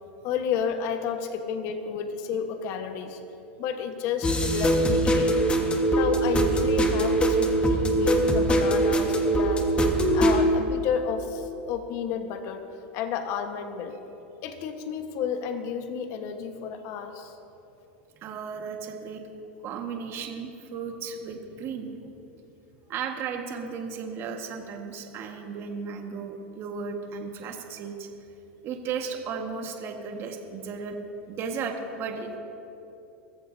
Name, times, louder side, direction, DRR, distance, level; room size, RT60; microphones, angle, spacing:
voice 1, 0.2-3.2 3.6-5.4 5.9-9.6 10.1-12.6 12.9-14.0 14.4-17.4, left 7 dB, 55° left, 6 dB, 1.3 m, -31 dB
sound 1, 4.2-10.4, right 1 dB, 15° left, 1.4 m, -22 dB
voice 2, 18.2-19.2 19.6-22.1 22.9-28.1 28.6-31.0 31.3-32.4, right 5 dB, 45° right, 3 dB, 1.6 m, -35 dB
23.0 x 14.5 x 2.8 m, 2.9 s
supercardioid pair, 115°, 6 cm